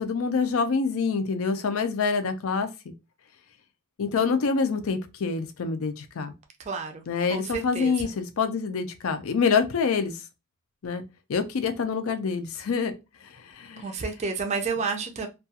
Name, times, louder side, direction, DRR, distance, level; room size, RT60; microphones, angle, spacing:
voice 1, 0.0-2.7 4.0-6.3 7.1-10.2 10.8-11.0 11.3-13.0 13.2-13.9, left 5 dB, 65° left, 0.4 m, -26 dB
voice 2, 6.7-7.0 7.3-7.9 13.8-15.3, right 4 dB, 30° right, 0.4 m, -30 dB
2.3 x 2.3 x 2.7 m
head